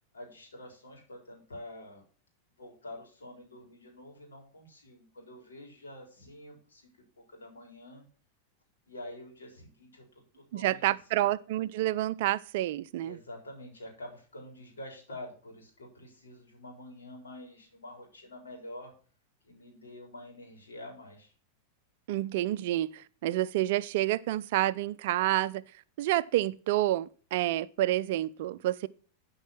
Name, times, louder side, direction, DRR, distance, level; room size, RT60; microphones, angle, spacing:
voice 1, 0.1-2.0 2.6-8.0 8.8-10.1 10.3-10.8 11.1-11.3 13.0-18.9 19.4-21.3, left 1 dB, 70° left, 4.3 m, -47 dB
voice 2, 10.5-13.2 22.1-25.6 26.0-28.9, right 15 dB, 50° right, 0.4 m, -29 dB
12.5 x 5.4 x 5.9 m
figure-of-eight pair, 90°, 0 cm